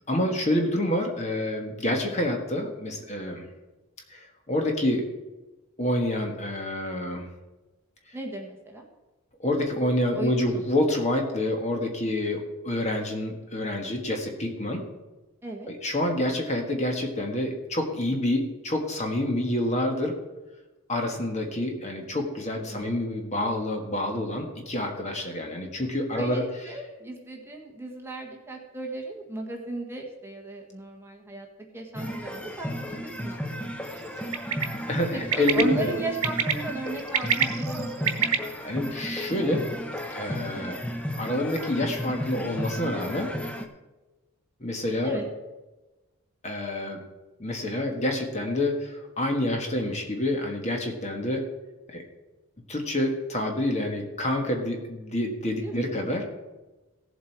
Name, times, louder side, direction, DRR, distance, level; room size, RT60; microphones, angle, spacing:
voice 1, 0.1-3.5 4.1-5.0 5.8-7.3 9.4-14.8 15.7-20.2 20.9-26.4 34.2-34.5 34.9-35.9 38.6-39.6 40.1-40.8 41.2-43.3 44.6-45.2 46.4-47.0 47.4-51.5 51.9-52.0 52.7-56.2, left 1 dB, 30° left, 3 dB, 1.5 m, -28 dB
voice 2, 8.1-8.8 10.1-10.6 15.4-15.7 22.7-22.9 26.1-31.5 31.7-33.5 33.9-34.2 35.1-38.2 45.0-45.2 55.6-55.8, right 2 dB, 10° right, 1 dB, 1.4 m, -35 dB
sound 1, 31.9-43.7, equal, 5° left, 0.7 m, -34 dB
Bird, 34.3-34.6 35.3-35.6 36.2-36.5 37.0-38.4, right 9 dB, 85° right, 1.0 m, -24 dB
16.0 x 7.6 x 4.6 m, 1.1 s
head